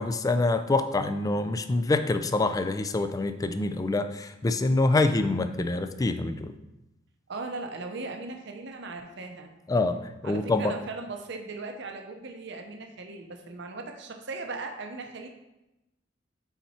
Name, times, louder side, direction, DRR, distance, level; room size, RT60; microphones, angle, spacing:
voice 1, 0.0-6.5 9.7-10.0 10.2-10.8, left 2 dB, 20° left, 9 dB, 0.3 m, -26 dB
voice 2, 7.3-9.5 10.2-15.3, right 3 dB, 65° right, 4 dB, 0.8 m, -38 dB
5.7 x 4.3 x 4.3 m, 0.95 s
head